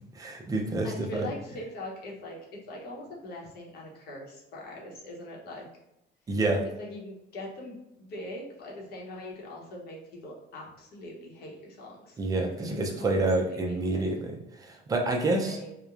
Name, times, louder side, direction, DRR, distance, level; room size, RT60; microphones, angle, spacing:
voice 1, 0.1-1.3 6.3-6.6 12.2-15.6, right 2 dB, 20° right, 1 dB, 0.3 m, -28 dB
voice 2, 0.8-2.4 2.6-5.7 6.8-12.2 12.5-13.2 13.4-14.1 15.3-15.7, left 1 dB, 60° left, -2 dB, 0.8 m, -42 dB
2.9 x 2.0 x 2.3 m, 0.86 s
cardioid pair, 150°, 19 cm